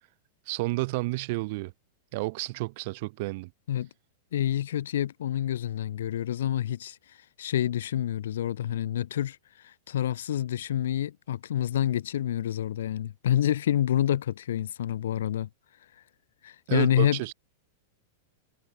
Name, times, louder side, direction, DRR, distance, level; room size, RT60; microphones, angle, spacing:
voice 1, 0.5-1.7 2.1-3.5 16.7-17.3, right 23 dB, 55° right, 0.6 m, -30 dB
voice 2, 4.3-7.0 7.4-9.4 9.9-15.5 16.4-17.2, left 11 dB, 80° left, 0.3 m, -27 dB
hypercardioid pair, 130°, 0 cm